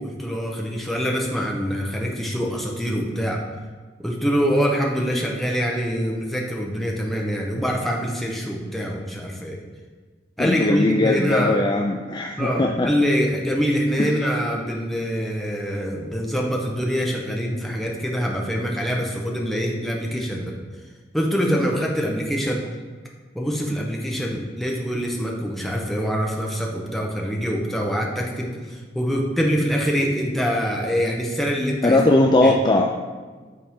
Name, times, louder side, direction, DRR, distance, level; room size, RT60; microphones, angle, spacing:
voice 1, 0.0-3.4 4.0-9.6 10.4-11.6 12.4-20.5 21.1-22.6 23.3-32.0 32.4-32.5, equal, ahead, -1 dB, 0.9 m, -24 dB
voice 2, 10.4-12.9 14.0-14.1 31.8-32.9, left 2 dB, 25° left, 1 dB, 0.4 m, -19 dB
8.5 x 4.2 x 3.6 m, 1.4 s
head